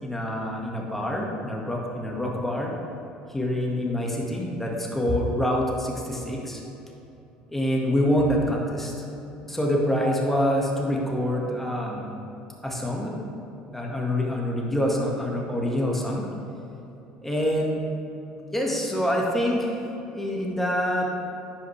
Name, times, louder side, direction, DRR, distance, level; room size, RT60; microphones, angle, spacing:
voice 1, 0.0-2.7 3.3-6.6 7.5-8.9 9.5-12.1 12.6-13.1 13.7-16.3 17.2-17.8 18.5-19.8 20.1-21.1, equal, 5° left, -2 dB, 1.7 m, -26 dB
10.5 x 5.4 x 3.3 m, 2.9 s
hypercardioid pair, 75°, 4 cm